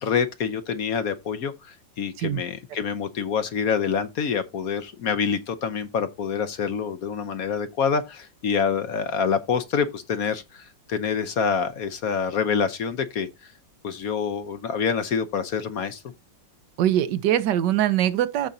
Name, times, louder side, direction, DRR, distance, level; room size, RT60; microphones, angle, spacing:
voice 1, 0.0-13.5 13.8-16.0, left 6 dB, 60° left, 1.1 m, -26 dB
voice 2, 16.8-18.5, right 11 dB, 70° right, 1.4 m, -22 dB
14.5 x 5.2 x 2.7 m
omnidirectional pair, 2.0 m